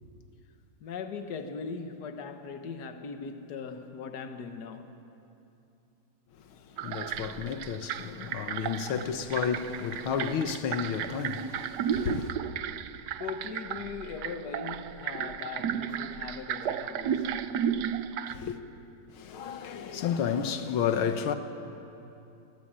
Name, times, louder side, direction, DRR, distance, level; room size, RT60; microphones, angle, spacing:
voice 1, 0.8-5.0 13.2-17.4, left 5 dB, 55° left, 1.8 m, -39 dB
voice 2, 6.3-12.4 18.3-18.6 19.1-21.3, left 7 dB, 85° left, 1.9 m, -32 dB
sound 1, 6.8-18.3, right 8 dB, 65° right, 1.2 m, -34 dB
26.5 x 18.0 x 8.9 m
omnidirectional pair, 2.2 m